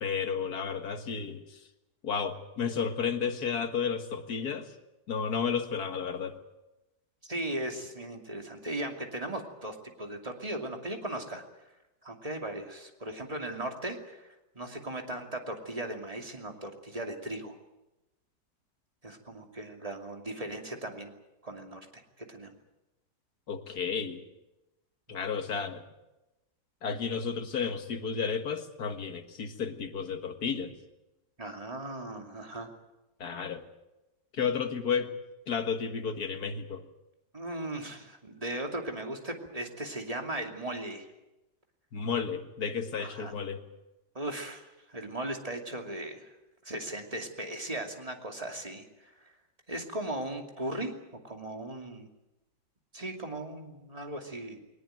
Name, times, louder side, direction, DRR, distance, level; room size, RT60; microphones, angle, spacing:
voice 1, 0.0-1.6 2.0-4.7 5.1-6.4 23.5-24.2 25.1-25.8 26.8-30.7 33.2-33.6 34.3-35.1 35.5-36.8 41.9-43.6, left 6 dB, 60° left, 7 dB, 2.1 m, -32 dB
voice 2, 7.2-11.4 12.0-17.5 19.0-21.1 21.4-22.6 25.3-25.4 31.4-32.7 37.3-41.1 43.0-43.3 44.1-46.3 46.6-49.3 49.7-50.9 51.2-52.1 52.9-54.6, right 1 dB, 20° right, 3 dB, 2.6 m, -38 dB
20.5 x 19.0 x 9.2 m, 0.99 s
omnidirectional pair, 1.9 m